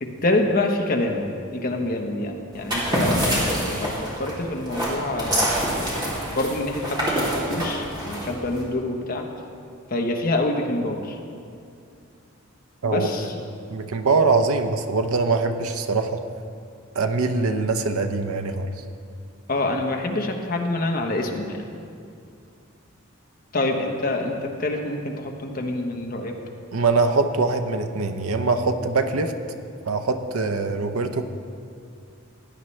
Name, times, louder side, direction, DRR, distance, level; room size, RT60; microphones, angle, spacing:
voice 1, 0.0-1.2 1.5-5.6 6.3-9.3 9.9-11.2 12.8-13.4 19.5-21.7 23.5-26.4, left 2 dB, 40° left, 2 dB, 1.0 m, -26 dB
sound 1, 2.5-8.6, right 1 dB, 20° right, 2.5 m, -26 dB
voice 2, 13.7-16.2 16.9-18.7 26.7-29.3 29.9-31.2, right 3 dB, 85° right, 7 dB, 0.8 m, -23 dB
16.5 x 9.7 x 3.2 m, 2.4 s
head